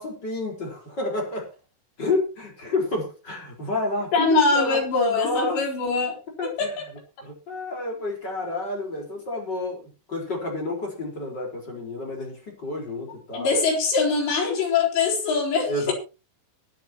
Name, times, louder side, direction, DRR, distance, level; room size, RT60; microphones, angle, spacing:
voice 1, 0.0-1.5 2.0-5.6 6.4-6.7 7.2-13.5 15.7-15.9, left 2 dB, 25° left, 1 dB, 4.7 m, -30 dB
voice 2, 4.1-6.8 13.3-15.9, left 4 dB, 85° left, 0 dB, 6.3 m, -23 dB
23.0 x 9.3 x 3.0 m, 0.31 s
omnidirectional pair, 4.9 m